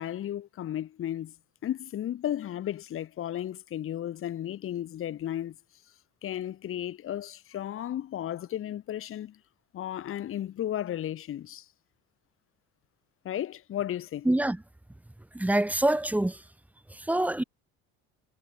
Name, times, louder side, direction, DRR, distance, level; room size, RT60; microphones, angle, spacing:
voice 1, 0.0-1.3 1.6-5.6 6.2-9.4 9.7-11.7 13.2-14.3, left 11 dB, 45° left, 2.3 m, -34 dB
voice 2, 14.3-14.6 15.4-16.4 17.1-17.4, right 1 dB, 5° right, 1.9 m, -25 dB
cardioid pair, 145°, 31 cm